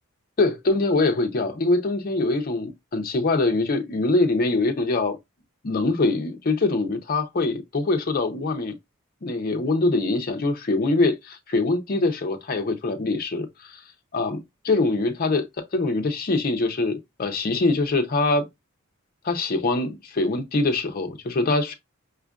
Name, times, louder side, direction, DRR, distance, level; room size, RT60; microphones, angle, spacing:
voice 1, 0.4-5.2 5.6-8.7 9.2-13.8 14.1-15.5 15.7-18.5 19.2-21.7, left 2 dB, 40° left, 0.5 m, -23 dB
5.0 x 2.4 x 2.3 m
head